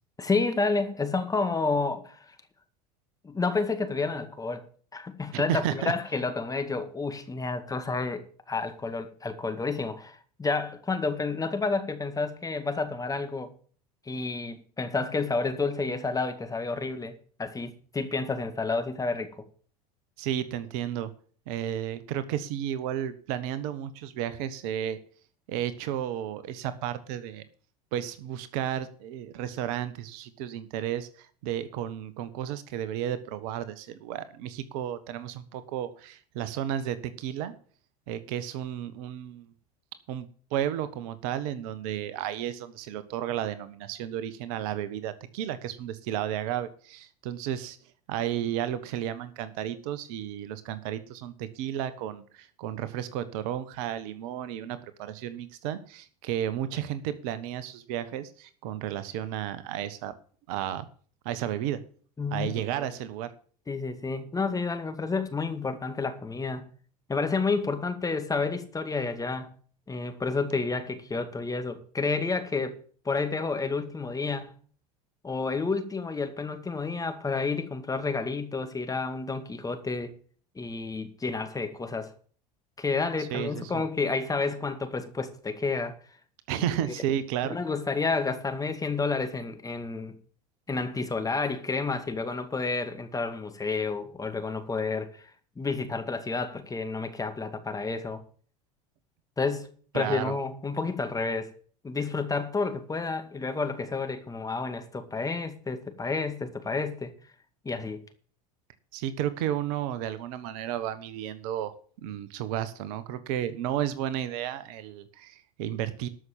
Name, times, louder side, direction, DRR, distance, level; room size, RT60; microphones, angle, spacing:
voice 1, 0.2-2.4 3.2-4.7 4.9-13.5 14.1-19.5 62.2-62.9 63.7-66.7 67.1-69.5 69.9-72.8 73.1-74.5 75.2-80.1 80.6-82.1 82.8-86.0 86.8-86.9 87.5-90.2 90.7-95.2 95.6-98.2 99.4-99.7 99.9-101.5 101.8-107.1 107.6-108.1, left 4 dB, 15° left, 2.1 m, -30 dB
voice 2, 5.3-5.9 20.2-21.1 21.5-25.0 25.5-27.4 27.9-37.5 38.1-39.5 40.1-47.8 48.1-60.1 60.5-60.9 61.2-61.8 62.3-63.3 83.2-83.8 86.5-87.6 99.9-100.3 108.9-111.7 112.0-116.1, right 11 dB, 65° right, 1.4 m, -33 dB
13.0 x 6.3 x 7.3 m
hypercardioid pair, 80°, 20 cm